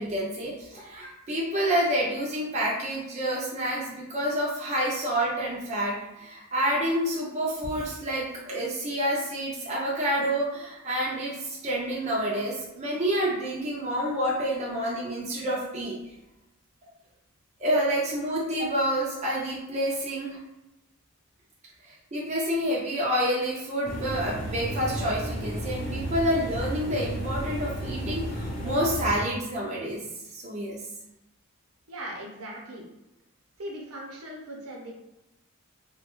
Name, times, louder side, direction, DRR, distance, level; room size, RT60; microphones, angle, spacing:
voice 1, 0.0-16.0 17.6-20.4 21.9-30.0 30.3-30.8, equal, 30° right, -5 dB, 0.4 m, -28 dB
sound 1, 23.8-29.2, right 1 dB, 40° left, 0.5 m, -33 dB
voice 2, 31.9-32.8 33.6-34.9, right 1 dB, 75° right, -1 dB, 0.7 m, -39 dB
2.4 x 2.2 x 2.9 m, 0.93 s
head